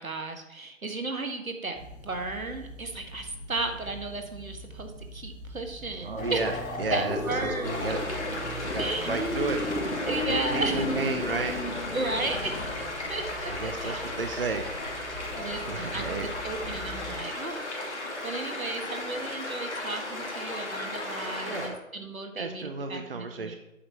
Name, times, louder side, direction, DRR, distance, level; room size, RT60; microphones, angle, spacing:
voice 1, 0.0-1.8 2.0-6.5 6.9-7.9 8.8-9.2 10.1-10.8 11.9-14.0 15.3-23.6, right 3 dB, 80° right, 5 dB, 1.6 m, -34 dB
sound 1, 1.7-17.2, equal, 25° right, 3.8 m, -44 dB
voice 2, 6.0-8.0 8.7-11.5 13.5-14.6 15.0-15.3 15.7-16.3 21.4-21.8 22.3-23.6, right 4 dB, 45° right, 5 dB, 0.8 m, -33 dB
sound 2, 6.2-12.9, left 1 dB, 80° left, 1.7 m, -33 dB
sound 3, 7.6-21.7, left 2 dB, 55° left, 2.4 m, -35 dB
8.6 x 7.3 x 4.6 m, 0.95 s
figure-of-eight pair, 150°, 41 cm